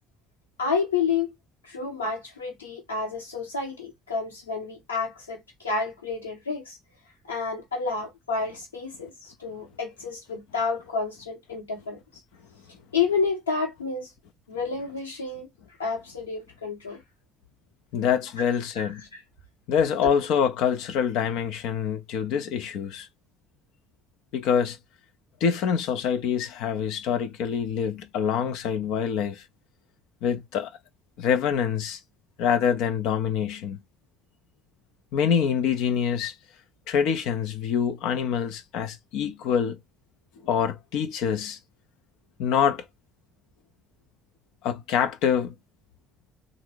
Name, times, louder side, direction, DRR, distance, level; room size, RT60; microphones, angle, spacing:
voice 1, 0.6-1.3 1.6-6.8 7.3-12.0 12.9-14.1 14.5-15.5 15.8-17.0 18.4-19.2, left 5 dB, 80° left, 1.4 m, -30 dB
voice 2, 17.9-19.0 19.7-23.1 24.3-24.8 25.4-29.4 30.2-30.7 31.2-32.0 32.4-33.8 35.1-36.3 36.9-39.8 40.4-41.6 42.4-42.8 44.6-45.5, left 7 dB, 60° left, 0.5 m, -25 dB
3.8 x 2.6 x 3.0 m
figure-of-eight pair, 50°, 0 cm